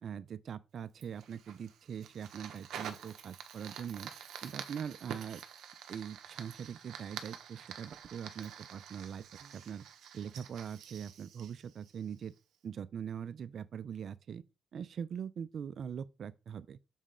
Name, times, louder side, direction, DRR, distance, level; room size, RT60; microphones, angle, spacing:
voice 1, 0.0-5.4 5.9-9.8 10.1-12.3 12.6-14.4 14.7-16.8, right 8 dB, 55° right, 0.5 m, -42 dB
Fire, 1.0-12.4, right 8 dB, 75° right, 1.0 m, -48 dB
7.3 x 4.2 x 3.8 m
cardioid pair, 90°, 0 cm